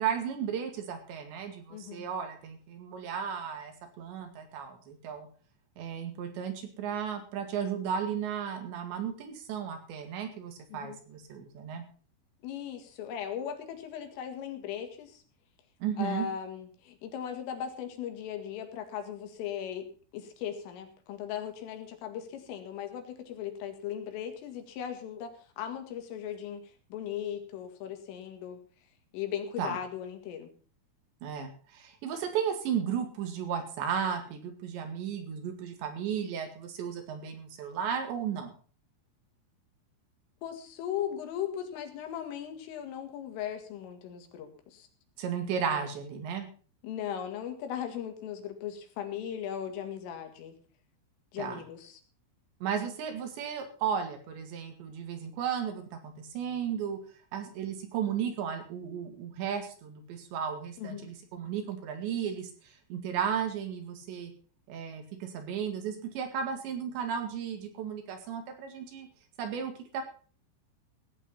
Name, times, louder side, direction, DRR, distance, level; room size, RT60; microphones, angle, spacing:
voice 1, 0.0-5.3 5.8-11.8 15.8-16.3 29.6-29.8 31.2-38.5 45.2-46.5 51.4-51.6 52.6-57.0 57.3-64.3 64.7-69.1 69.4-70.0, right 8 dB, 65° right, 6 dB, 4.1 m, -34 dB
voice 2, 1.7-2.1 10.7-11.0 12.4-15.2 16.0-19.9 20.1-28.6 29.1-30.5 40.4-44.9 46.8-50.6 51.3-52.0 60.8-61.1, left 9 dB, 85° left, 5 dB, 4.6 m, -38 dB
16.5 x 8.6 x 5.6 m, 0.40 s
omnidirectional pair, 5.6 m